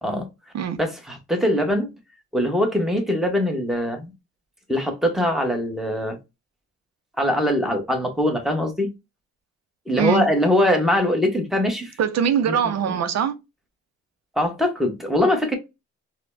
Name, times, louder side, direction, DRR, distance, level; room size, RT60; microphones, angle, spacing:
voice 1, 0.8-1.9 2.3-4.1 4.7-6.2 7.2-8.9 9.9-11.9 12.5-12.6 14.4-15.5, left 1 dB, ahead, 1.1 m, -22 dB
voice 2, 9.9-10.3 12.0-13.3, right 8 dB, 60° right, 0.6 m, -22 dB
4.2 x 2.2 x 2.6 m
cardioid pair, 90°, 30 cm